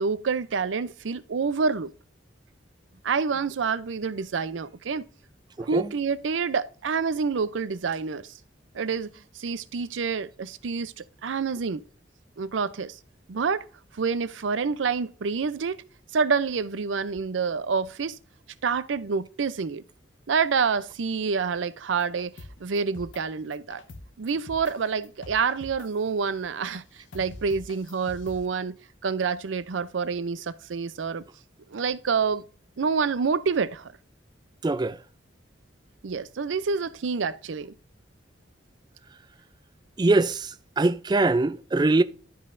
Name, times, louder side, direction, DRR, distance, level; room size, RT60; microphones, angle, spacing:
voice 1, 0.0-1.9 3.0-5.0 5.6-8.3 8.7-9.1 9.4-11.8 12.4-13.0 13.3-13.7 14.0-15.8 16.1-18.2 18.6-19.8 20.3-22.3 22.6-23.8 24.2-26.8 27.1-28.7 29.0-31.2 31.7-32.4 32.8-33.9 36.0-37.7, right 5 dB, 85° right, 0.5 m, -27 dB
voice 2, 5.6-5.9 34.6-35.0 40.0-42.0, right 2 dB, 25° right, 0.4 m, -23 dB
sound 1, 22.0-23.2 23.5-24.7 25.0-26.0 26.7-26.8 27.1-28.5, left 2 dB, 85° left, 0.9 m, -44 dB
12.0 x 5.4 x 2.5 m
head